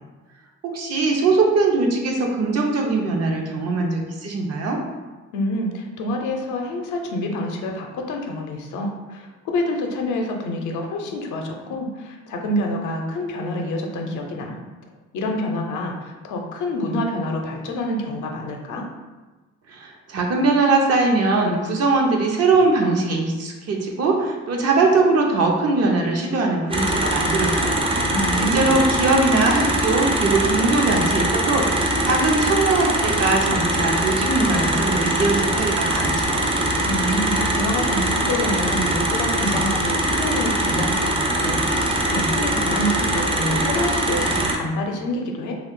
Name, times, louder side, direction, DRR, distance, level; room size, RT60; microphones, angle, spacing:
voice 1, 0.6-4.8 19.7-27.8 28.4-31.7 32.0-36.4, right 3 dB, 55° right, 1 dB, 0.6 m, -21 dB
voice 2, 5.3-14.6 15.1-18.9 28.1-28.7 36.8-45.6, left 1 dB, 75° left, 2 dB, 0.6 m, -27 dB
sound 1, 26.7-44.6, right 1 dB, 20° right, 0.4 m, -22 dB
2.5 x 2.3 x 3.6 m, 1.2 s
cardioid pair, 90°, 30 cm